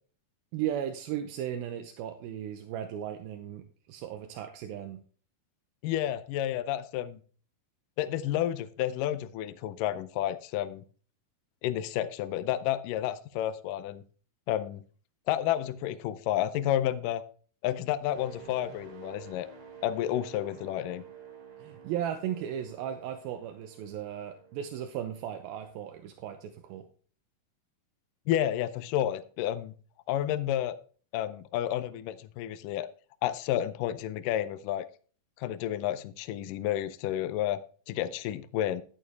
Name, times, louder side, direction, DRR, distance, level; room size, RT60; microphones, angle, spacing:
voice 1, 0.5-5.0 21.6-26.9, right 10 dB, 80° right, 6 dB, 2.6 m, -36 dB
voice 2, 5.8-7.2 8.0-10.8 11.6-14.0 14.5-14.8 15.3-17.2 17.6-19.5 19.8-21.0 28.3-29.7 30.1-30.8 31.1-32.9 33.2-34.9 35.4-37.6 37.9-38.8, left 12 dB, 85° left, 12 dB, 1.9 m, -30 dB
sound 1, 18.1-26.0 26.4-26.7, right 8 dB, 45° right, 3.2 m, -50 dB
11.5 x 8.8 x 3.4 m, 0.42 s
omnidirectional pair, 4.5 m